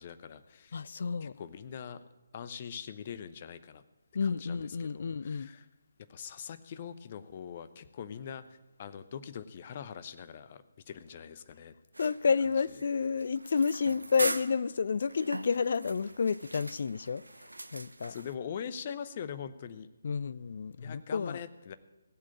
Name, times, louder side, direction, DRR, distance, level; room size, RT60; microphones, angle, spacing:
voice 1, 0.0-0.8 1.2-2.0 2.3-3.8 4.2-5.7 6.1-11.7 18.1-19.9 20.8-21.8, left 8 dB, 35° left, 0.8 m, -43 dB
voice 2, 0.7-1.4 4.1-5.5 12.0-17.2 17.7-18.1 20.0-21.4, left 5 dB, 50° left, 0.4 m, -30 dB
sound 1, 11.9-18.4, right 2 dB, 80° right, 0.7 m, -41 dB
16.5 x 7.5 x 8.4 m
figure-of-eight pair, 145°, 0 cm